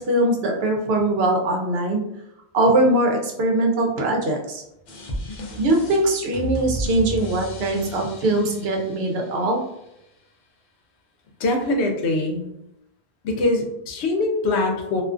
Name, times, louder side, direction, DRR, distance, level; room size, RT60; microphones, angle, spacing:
voice 1, 0.0-2.0 2.5-4.6 5.6-9.6, right 1 dB, 70° right, 1 dB, 0.8 m, -21 dB
sound 1, 4.9-9.8, left 1 dB, 55° left, 0.6 m, -33 dB
voice 2, 11.4-12.4 13.2-15.0, left 2 dB, 85° left, 2 dB, 0.9 m, -23 dB
2.4 x 2.4 x 2.4 m, 0.82 s
omnidirectional pair, 1.1 m